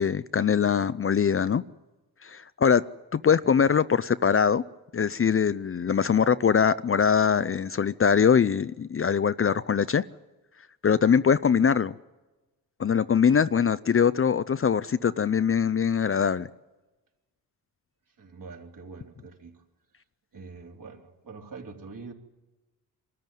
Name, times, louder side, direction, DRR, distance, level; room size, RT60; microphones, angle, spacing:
voice 1, 0.0-1.6 2.2-2.8 3.1-4.6 4.9-10.0 10.8-11.9 12.8-16.5, left 7 dB, 35° left, 0.6 m, -22 dB
voice 2, 18.2-19.6 20.3-22.1, right 4 dB, 55° right, 3.7 m, -44 dB
24.5 x 13.5 x 9.2 m
cardioid pair, 65°, 39 cm